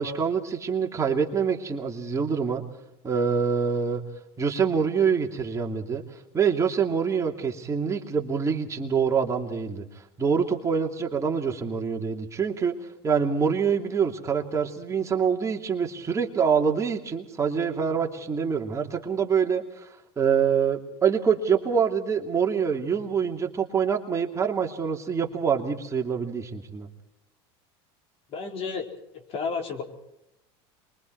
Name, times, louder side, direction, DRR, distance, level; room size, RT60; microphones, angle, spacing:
voice 1, 0.0-2.6 3.0-4.0 4.4-9.8 10.2-12.8 13.0-26.9, right 6 dB, 20° right, 1 dB, 2.6 m, -25 dB
voice 2, 28.3-28.9 29.3-29.8, left 5 dB, 45° left, 4 dB, 4.6 m, -31 dB
28.0 x 23.0 x 4.7 m, 0.87 s
supercardioid pair, 120°, 14 cm